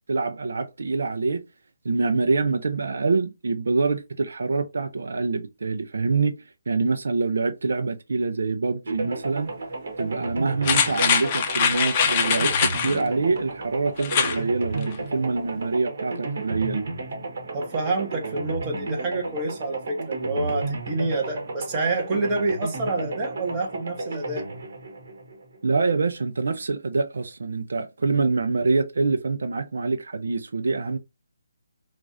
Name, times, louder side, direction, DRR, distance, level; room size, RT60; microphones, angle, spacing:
voice 1, 0.1-1.4 1.8-6.3 6.7-9.5 10.0-16.8 25.6-31.0, right 3 dB, 70° right, 0.5 m, -25 dB
sound 1, 8.9-25.8, right 2 dB, 55° right, 1.5 m, -33 dB
sound 2, 10.6-13.0 14.0-14.4 14.8-14.9, left 7 dB, 25° left, 0.6 m, -22 dB
voice 2, 17.5-24.4, right 2 dB, 20° right, 1.1 m, -27 dB
4.6 x 2.4 x 2.6 m
hypercardioid pair, 165°, 0 cm